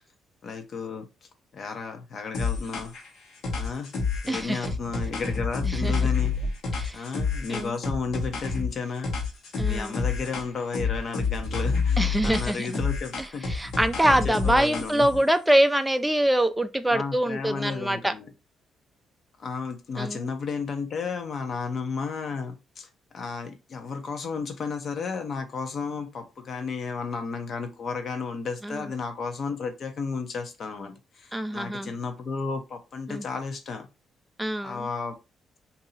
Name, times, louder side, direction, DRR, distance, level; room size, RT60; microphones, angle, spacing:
voice 1, 0.4-1.1 1.5-2.9 3.5-3.9 4.2-6.3 6.9-9.1 9.6-13.4 14.0-15.1 16.9-18.3 19.4-22.9 23.1-33.9 34.6-35.2, left 5 dB, 55° left, 0.8 m, -33 dB
sound 1, 2.3-3.1 3.4-8.7 9.0-10.5 10.7-15.2, left 5 dB, 70° left, 1.3 m, -28 dB
voice 2, 4.3-4.6 5.6-6.0 6.7-7.0 7.5-7.7 9.6-10.0 12.0-12.8 13.2-18.1 20.0-20.3 28.6-28.8 31.3-31.9 33.1-33.2 34.4-34.9, right 1 dB, 5° right, 0.4 m, -24 dB
2.8 x 2.7 x 4.0 m
cardioid pair, 90°, 0 cm